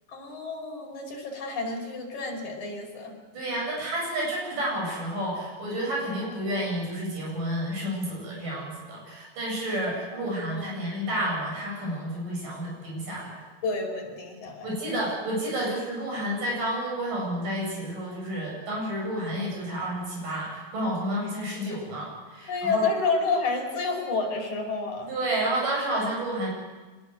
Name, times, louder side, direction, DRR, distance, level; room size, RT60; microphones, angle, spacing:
voice 1, 0.1-3.1 10.5-10.8 13.6-14.7 22.5-25.1, left 3 dB, 55° left, 0 dB, 6.7 m, -29 dB
voice 2, 3.3-13.4 14.6-22.8 25.1-26.5, right 1 dB, 70° right, -3 dB, 9.7 m, -30 dB
25.5 x 21.5 x 8.1 m, 1.3 s
omnidirectional pair, 4.0 m